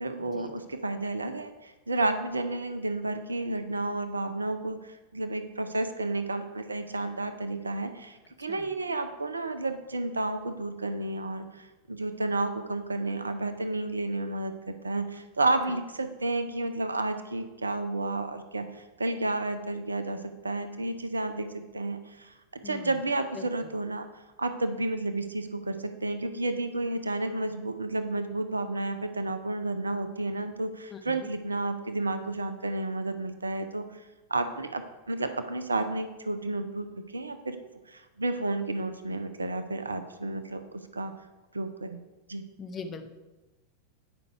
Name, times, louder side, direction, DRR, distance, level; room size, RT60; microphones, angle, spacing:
voice 1, 0.0-24.1 24.4-34.0 34.3-37.6 37.9-41.1 41.5-42.0 42.3-42.4, right 2 dB, 80° right, 9 dB, 0.6 m, -31 dB
voice 2, 42.6-43.1, left 5 dB, 25° left, 6 dB, 0.7 m, -39 dB
9.1 x 5.2 x 4.5 m, 1.1 s
figure-of-eight pair, 90°, 0 cm